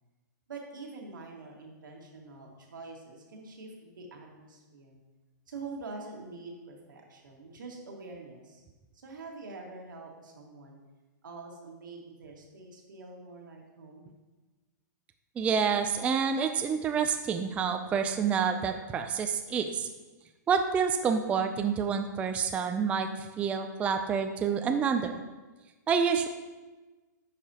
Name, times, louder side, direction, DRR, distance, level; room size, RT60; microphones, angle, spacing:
voice 1, 0.5-5.0 5.5-8.6 8.9-10.8 11.2-14.1, right 3 dB, 85° right, 0 dB, 1.8 m, -45 dB
voice 2, 15.4-19.9 20.5-25.2 25.9-26.3, right 6 dB, 15° right, 6 dB, 0.3 m, -28 dB
10.0 x 4.9 x 2.8 m, 1.2 s
hypercardioid pair, 140°, 10 cm